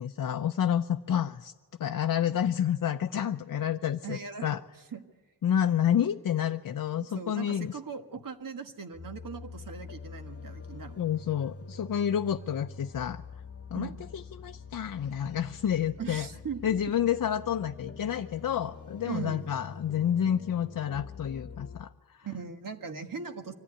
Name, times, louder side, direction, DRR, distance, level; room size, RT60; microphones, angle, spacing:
voice 1, 0.0-1.5 1.8-4.6 5.4-7.8 11.0-13.2 13.7-16.3 16.6-22.3, left 9 dB, 55° left, 6 dB, 0.6 m, -29 dB
voice 2, 4.0-4.5 4.9-5.0 7.0-11.1 13.7-14.0 16.0-16.6 19.1-19.5 22.2-23.5, right 6 dB, 55° right, 6 dB, 1.7 m, -39 dB
sound 1, 8.9-21.8, left 4 dB, 40° left, 1.2 m, -45 dB
24.5 x 14.0 x 10.0 m, 1.4 s
wide cardioid pair, 95°, 38 cm